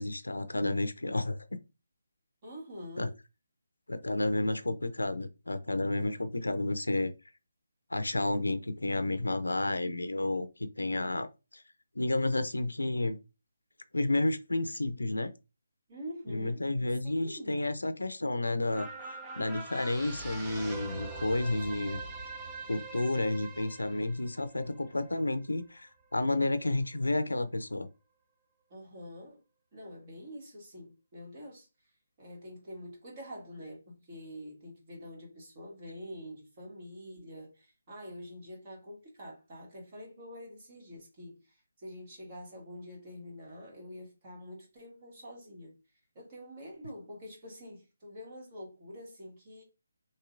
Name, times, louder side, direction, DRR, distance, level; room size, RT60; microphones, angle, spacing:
voice 1, 0.0-1.4 3.0-3.1 3.9-7.1 7.9-10.5 10.8-11.3 11.5-11.6 12.0-13.2 13.9-15.3 16.3-18.9 19.3-22.0 22.7-27.9, left 2 dB, 70° left, 0.6 m, -31 dB
voice 2, 2.4-3.2 15.9-16.6 17.0-17.6 28.7-29.4 29.7-31.9 32.2-45.7 46.2-49.6, equal, 30° right, 1.9 m, -46 dB
sound 1, 18.7-25.4 25.8-25.9, right 3 dB, 10° right, 0.7 m, -43 dB
5.7 x 3.0 x 2.5 m
figure-of-eight pair, 150°, 0 cm